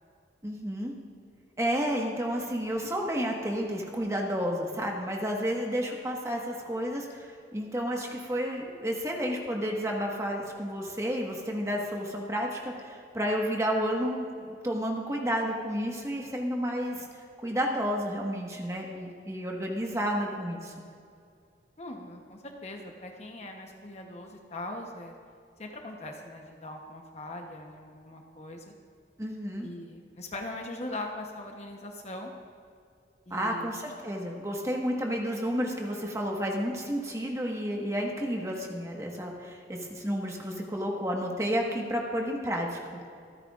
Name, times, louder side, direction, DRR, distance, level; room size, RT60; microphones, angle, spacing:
voice 1, 0.4-0.9 1.6-17.1 17.4-20.7 29.2-29.7 33.3-43.0, equal, 15° right, 0 dB, 1.5 m, -31 dB
voice 2, 21.8-25.1 25.6-28.7 29.6-32.3 33.3-33.7, left 1 dB, 35° left, 2 dB, 1.0 m, -41 dB
26.0 x 9.7 x 2.5 m, 2.3 s
head